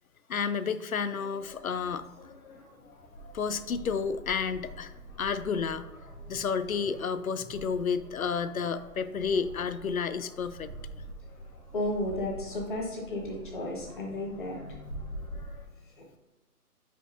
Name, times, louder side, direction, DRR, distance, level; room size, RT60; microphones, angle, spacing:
voice 1, 0.3-2.6 3.2-4.9 5.2-5.8 6.3-10.7, left 6 dB, 65° left, 13 dB, 0.5 m, -31 dB
sound 1, 1.3-15.6, equal, 15° left, 1.7 m, -46 dB
voice 2, 11.7-15.1, left 1 dB, 30° left, -2 dB, 1.2 m, -34 dB
7.6 x 5.1 x 2.6 m, 1.2 s
figure-of-eight pair, 155°, 46 cm